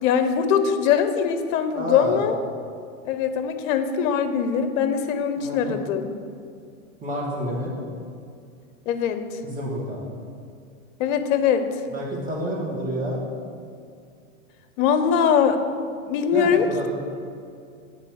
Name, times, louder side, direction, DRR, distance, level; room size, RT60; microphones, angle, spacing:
voice 1, 0.0-2.3 3.0-6.1 8.9-9.4 11.0-11.8 14.8-15.6 16.1-16.9, left 7 dB, 65° left, 8 dB, 0.7 m, -22 dB
voice 2, 1.7-2.3 5.4-5.8 7.0-7.7 9.4-10.0 11.9-13.2 16.3-16.9, equal, 20° right, -4 dB, 1.5 m, -29 dB
9.0 x 3.1 x 4.5 m, 2.3 s
supercardioid pair, 125°, 42 cm